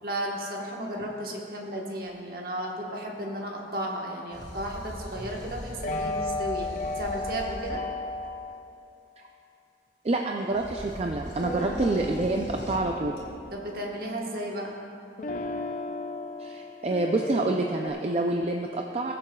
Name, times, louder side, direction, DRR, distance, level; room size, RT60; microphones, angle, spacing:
voice 1, 0.0-7.8 11.6-12.0 13.5-14.8, right 1 dB, 50° right, -1 dB, 1.2 m, -34 dB
sound 1, 4.3-8.5 10.5-13.5, equal, 70° left, 1.8 m, -41 dB
sound 2, 5.8-8.6 11.3-14.7 15.2-17.9, left 2 dB, 45° left, 0.5 m, -35 dB
voice 2, 10.0-13.2 16.4-19.1, right 2 dB, 35° right, 2 dB, 0.4 m, -27 dB
19.5 x 7.4 x 2.3 m, 2.8 s
head